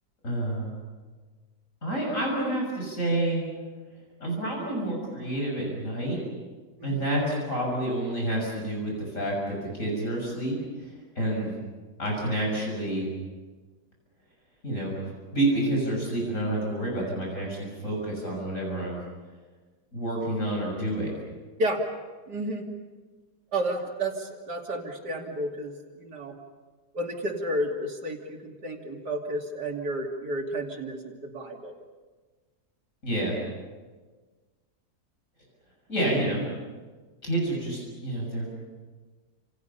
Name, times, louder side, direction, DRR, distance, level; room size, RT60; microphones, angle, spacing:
voice 1, 0.2-0.8 1.8-3.4 4.2-6.2 6.8-11.5 12.0-13.1 14.6-19.0 19.9-21.1 33.0-33.4 35.9-36.5 37.2-38.5, right 1 dB, 50° left, -2 dB, 7.1 m, -29 dB
voice 2, 22.3-22.7 23.5-26.4 26.9-31.7, right 1 dB, 90° right, 1 dB, 3.4 m, -31 dB
30.0 x 28.0 x 5.7 m, 1.4 s
omnidirectional pair, 1.7 m